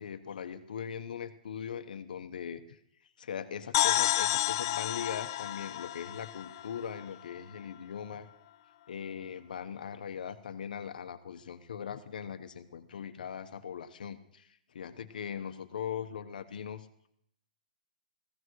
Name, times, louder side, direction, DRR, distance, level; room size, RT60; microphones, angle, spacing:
voice 1, 0.0-2.8 3.2-8.3 8.9-17.1, left 7 dB, 75° left, 10 dB, 1.0 m, -40 dB
sound 1, 3.7-7.4, left 14 dB, 35° left, 0.4 m, -30 dB
17.0 x 15.5 x 3.1 m, 0.75 s
hypercardioid pair, 170°, 5 cm